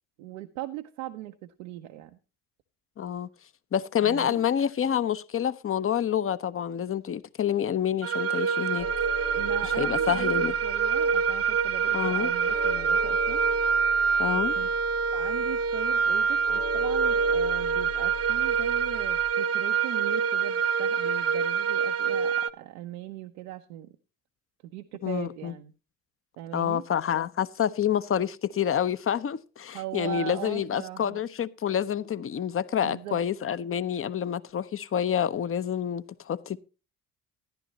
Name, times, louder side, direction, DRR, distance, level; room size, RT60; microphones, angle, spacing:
voice 1, 0.2-2.2 4.0-4.4 9.3-13.4 14.6-14.7 15.1-24.0 24.6-25.7 26.4-26.8 29.7-31.2 32.8-33.2, right 15 dB, 75° right, 0.8 m, -39 dB
voice 2, 3.0-3.3 3.7-8.9 9.6-10.5 11.9-12.3 14.2-14.5 25.0-25.5 26.5-36.6, left 9 dB, 30° left, 0.7 m, -28 dB
sound 1, 8.0-22.5, right 6 dB, 35° right, 0.7 m, -26 dB
sound 2, 8.8-19.3, left 3 dB, 80° left, 2.5 m, -42 dB
13.5 x 11.0 x 2.9 m
hypercardioid pair, 45°, 41 cm